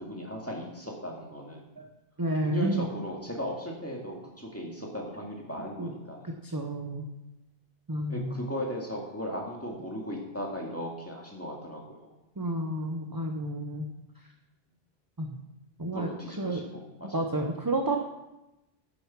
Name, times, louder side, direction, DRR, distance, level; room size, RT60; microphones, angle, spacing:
voice 1, 0.0-1.6 2.4-6.2 8.1-12.1 15.9-16.6 17.0-17.1, equal, 15° left, -2 dB, 2.1 m, -37 dB
voice 2, 2.2-2.9 5.8-5.9 6.2-7.1 7.9-8.4 12.4-13.9 15.2-15.4 15.8-16.1 16.4-16.6 17.1-18.0, right 1 dB, 20° right, 2 dB, 0.8 m, -30 dB
10.5 x 7.1 x 6.0 m, 0.96 s
omnidirectional pair, 1.1 m